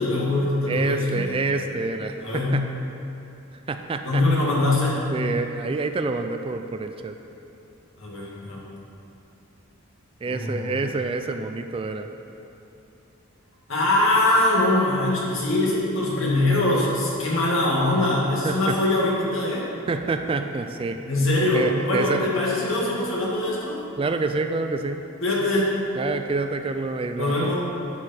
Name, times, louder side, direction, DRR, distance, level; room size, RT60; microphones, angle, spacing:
voice 1, 0.0-1.3 2.2-2.6 4.0-5.0 8.0-8.6 10.2-10.8 13.7-19.6 21.1-23.9 25.2-25.7 27.2-27.5, left 2 dB, 65° left, -5 dB, 2.1 m, -22 dB
voice 2, 0.7-2.6 3.7-4.2 5.1-7.2 10.2-12.1 18.4-18.8 19.9-21.0 21.5-22.3 24.0-25.0 26.0-27.5, right 3 dB, 25° right, 7 dB, 0.3 m, -27 dB
11.5 x 6.4 x 4.4 m, 2.8 s
head